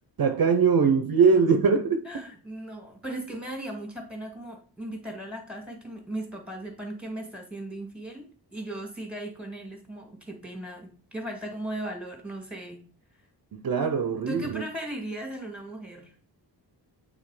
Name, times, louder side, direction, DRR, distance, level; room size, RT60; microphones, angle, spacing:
voice 1, 0.2-2.1 13.5-14.6, right 5 dB, 55° right, 0.7 m, -22 dB
voice 2, 2.1-12.8 14.3-16.1, right 1 dB, 5° right, 2.0 m, -37 dB
8.7 x 3.7 x 4.9 m
wide cardioid pair, 145°, 42 cm